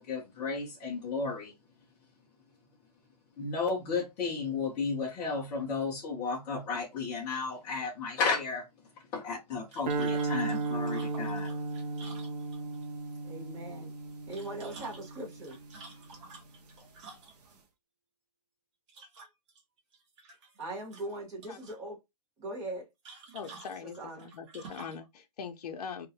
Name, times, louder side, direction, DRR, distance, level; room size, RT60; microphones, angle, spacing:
voice 1, 0.0-1.5 3.4-8.7 9.1-11.5, left 4 dB, 10° left, 0.3 m, -33 dB
sound 1, 9.7-12.8 14.1-17.6 18.9-19.6 19.9-20.6 20.9-21.8 23.0-25.1, right 3 dB, 50° right, 1.0 m, -51 dB
sound 2, 9.9-16.2, right 4 dB, 75° right, 0.7 m, -35 dB
voice 2, 13.2-13.9 14.3-15.6 20.6-22.0 22.4-22.8 23.8-24.3, right 1 dB, 15° right, 0.9 m, -40 dB
voice 3, 23.3-26.1, left 6 dB, 70° left, 0.5 m, -41 dB
2.3 x 2.0 x 2.6 m
hypercardioid pair, 160°, 20 cm